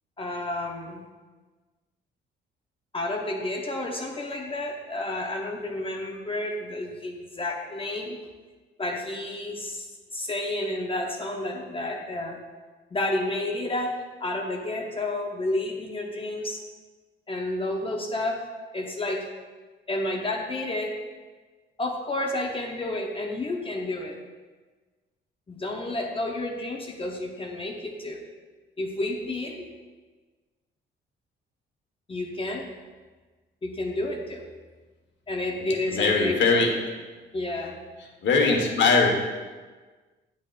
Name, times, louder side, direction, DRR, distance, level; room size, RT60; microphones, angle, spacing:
voice 1, 0.2-1.1 2.9-8.2 8.8-9.9 10.1-12.4 12.9-16.6 17.3-18.4 18.7-19.2 19.9-20.9 21.8-24.2 25.5-28.2 28.8-29.7 32.1-32.7 33.6-34.5 35.3-36.6 37.3-37.7, left 2 dB, 25° left, 1 dB, 0.8 m, -30 dB
voice 2, 35.6-36.7 38.2-39.1, left 4 dB, 70° left, 1 dB, 1.4 m, -21 dB
9.4 x 6.3 x 2.5 m, 1.4 s
cardioid pair, 90°, 20 cm